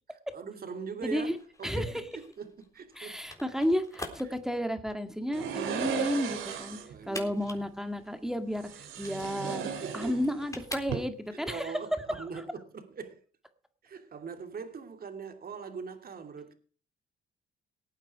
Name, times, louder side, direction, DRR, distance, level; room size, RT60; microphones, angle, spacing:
voice 1, 0.1-3.2 4.2-4.3 6.7-7.7 9.0-10.2 11.3-13.2 13.8-16.5, right 5 dB, 50° right, 2.8 m, -42 dB
voice 2, 1.0-1.4 1.6-1.9 3.0-6.8 7.1-11.7 12.1-12.2, equal, ahead, 1.9 m, -32 dB
sound 1, 1.2-11.4, left 2 dB, 15° left, 3.7 m, -46 dB
sound 2, 5.3-7.0 8.6-10.5 10.8-11.0, right 7 dB, 85° right, 3.0 m, -35 dB
18.5 x 9.0 x 4.7 m
cardioid pair, 90°, 20 cm